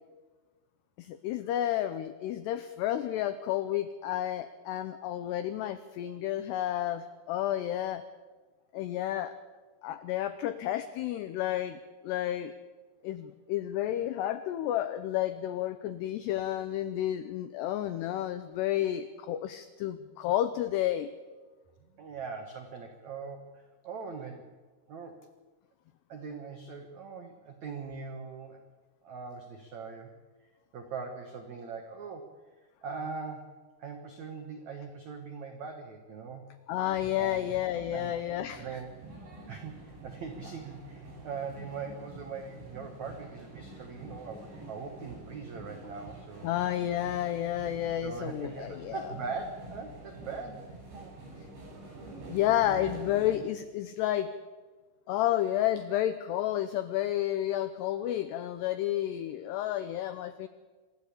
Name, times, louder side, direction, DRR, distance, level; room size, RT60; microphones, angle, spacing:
voice 1, 1.0-8.0 8.7-9.3 9.8-12.5 13.0-21.1 36.7-38.7 46.4-49.1 52.3-54.3 55.1-60.5, left 12 dB, 85° left, 12 dB, 2.4 m, -31 dB
voice 2, 22.0-24.5 24.9-25.2 26.1-28.6 29.0-30.1 30.7-32.3 32.8-33.5 33.8-36.4 37.2-37.5 37.9-38.2 38.6-38.9 39.5-46.5 48.0-50.7 50.9-51.1, right 5 dB, 85° right, 4 dB, 1.6 m, -41 dB
sound 1, 36.9-53.4, right 2 dB, 65° right, 9.7 m, -47 dB
25.5 x 13.0 x 8.6 m, 1.3 s
omnidirectional pair, 5.8 m